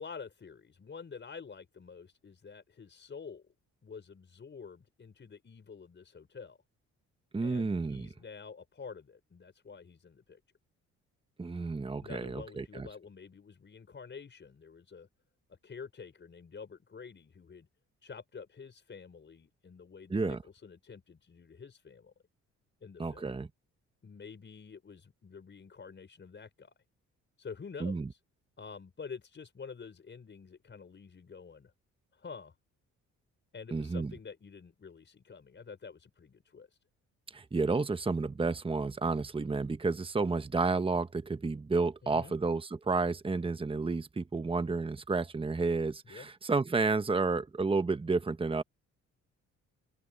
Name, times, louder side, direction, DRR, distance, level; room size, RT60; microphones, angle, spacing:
voice 1, 0.0-3.5 3.8-6.6 7.4-10.4 12.0-15.1 15.5-17.7 18.0-22.1 22.8-23.2 24.0-26.7 27.4-28.2 28.6-31.7 32.1-32.5 33.5-36.8 42.0-42.4 46.0-46.3, left 5 dB, 40° left, 5.4 m, -48 dB
voice 2, 7.3-8.1 11.4-12.9 20.1-20.4 23.0-23.5 27.8-28.1 33.7-34.1 37.3-48.6, right 3 dB, 20° right, 1.1 m, -31 dB
open air
cardioid pair, 90°, 30 cm